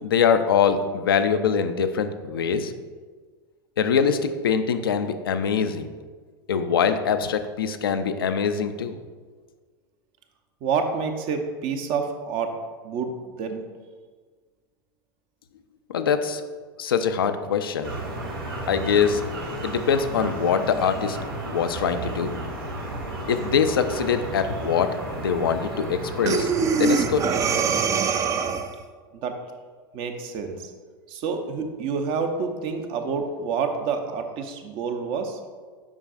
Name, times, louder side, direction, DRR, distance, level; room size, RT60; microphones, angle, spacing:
voice 1, 0.0-2.7 3.8-5.9 6.5-9.0 15.9-16.4 16.8-17.9 18.7-19.2 19.6-21.2 21.5-22.4 23.3-26.5 26.8-27.2, left 6 dB, 80° left, 9 dB, 0.4 m, -23 dB
voice 2, 10.6-12.5 12.8-13.1 13.4-13.6 29.2-29.4 29.9-30.7 31.1-35.4, right 5 dB, 45° right, 5 dB, 0.7 m, -28 dB
sound 1, 17.8-28.1, right 1 dB, 85° right, 1.2 m, -33 dB
Breathing, 26.3-28.8, right 5 dB, 25° right, 0.4 m, -23 dB
7.2 x 5.3 x 2.5 m, 1.5 s
hypercardioid pair, 90°, 12 cm